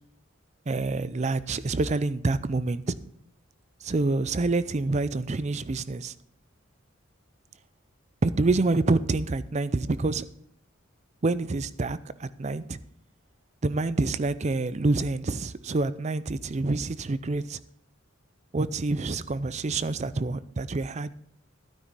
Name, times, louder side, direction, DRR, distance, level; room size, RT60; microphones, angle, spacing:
voice 1, 0.7-3.0 3.8-6.1 8.2-10.2 11.2-12.8 13.6-17.6 18.5-21.1, right 3 dB, 35° right, 0.5 m, -27 dB
12.5 x 9.3 x 4.1 m
head